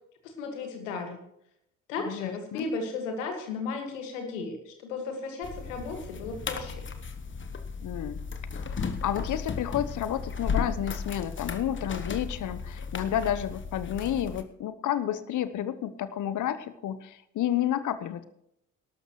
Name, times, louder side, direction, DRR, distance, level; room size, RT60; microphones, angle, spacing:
voice 1, 0.2-1.2 1.9-6.8, left 4 dB, 80° left, 5 dB, 2.0 m, -35 dB
voice 2, 2.0-2.7 7.8-8.2 8.5-18.2, left 11 dB, 50° left, 13 dB, 1.0 m, -31 dB
sound 1, 5.4-14.4, left 5 dB, 30° left, 1.1 m, -35 dB
19.5 x 12.0 x 3.2 m, 0.77 s
figure-of-eight pair, 45°, 38 cm